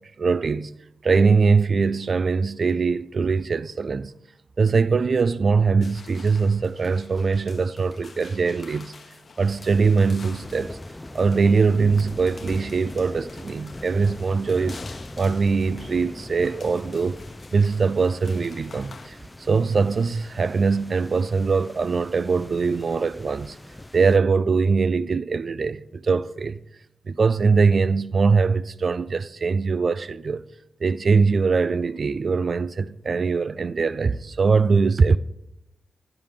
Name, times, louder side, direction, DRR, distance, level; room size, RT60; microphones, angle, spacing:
voice 1, 0.2-0.7 1.0-4.1 4.6-8.9 9.4-10.8 11.1-14.8 15.2-17.2 17.5-23.6 23.9-26.6 27.1-30.4 30.8-35.2, right 4 dB, 55° right, 0.4 m, -22 dB
sound 1, 5.8-19.1, left 4 dB, 55° left, 1.1 m, -48 dB
sound 2, 9.4-24.2, left 1 dB, 15° left, 0.6 m, -40 dB
19.0 x 11.0 x 3.7 m
supercardioid pair, 40°, 0 cm